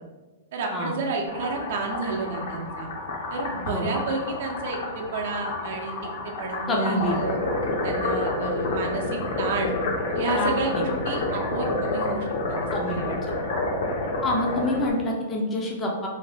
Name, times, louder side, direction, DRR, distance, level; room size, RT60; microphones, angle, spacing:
voice 1, 0.5-2.9 3.3-7.4 7.8-9.7 10.1-13.2, right 3 dB, 60° right, 1 dB, 0.5 m, -31 dB
sound 1, 1.3-14.9, left 2 dB, 65° left, 0.6 m, -29 dB
voice 2, 6.7-7.2 10.4-10.8 12.7-13.4 14.2-16.1, left 1 dB, 15° left, -2 dB, 0.4 m, -27 dB
2.7 x 2.1 x 3.2 m, 1.3 s
hypercardioid pair, 155°, 0 cm